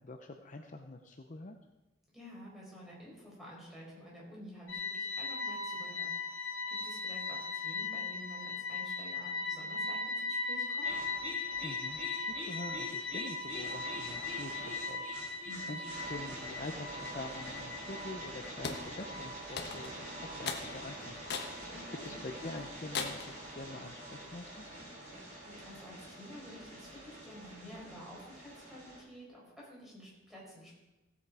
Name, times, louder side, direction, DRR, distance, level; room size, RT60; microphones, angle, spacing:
voice 1, 0.0-1.6 11.6-21.7 22.0-24.8, left 2 dB, 40° left, 5 dB, 0.7 m, -46 dB
voice 2, 2.1-10.9 15.4-15.8 21.7-22.1 25.4-30.7, equal, ahead, -5 dB, 4.6 m, -51 dB
sound 1, 4.7-24.6, left 3 dB, 80° left, 0.8 m, -39 dB
sound 2, 10.8-29.0, right 1 dB, 40° right, 3.3 m, -46 dB
sound 3, 18.6-18.9 19.6-20.0 20.5-20.7 21.3-21.6 22.1-22.2 22.9-23.3, left 5 dB, 55° left, 1.2 m, -37 dB
16.0 x 8.2 x 4.8 m, 1.1 s
head